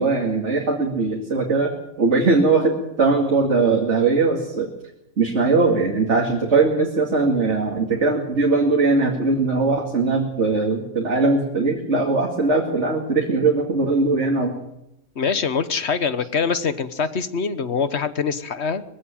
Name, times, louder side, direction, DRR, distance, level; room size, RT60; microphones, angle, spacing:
voice 1, 0.0-1.7 2.0-4.7 5.2-14.5, right 3 dB, 45° right, 1 dB, 2.7 m, -20 dB
voice 2, 15.1-18.8, left 5 dB, 45° left, 13 dB, 1.4 m, -24 dB
22.0 x 16.0 x 9.2 m, 0.85 s
omnidirectional pair, 1.7 m